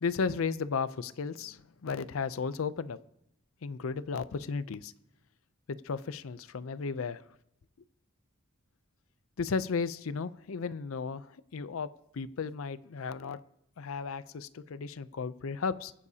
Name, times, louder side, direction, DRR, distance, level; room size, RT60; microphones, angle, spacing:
voice 1, 0.0-3.0 3.6-4.9 5.7-7.2 9.4-11.3 11.5-13.4 13.8-15.9, left 5 dB, 85° left, 15 dB, 0.5 m, -34 dB
23.0 x 9.7 x 2.8 m, 0.80 s
head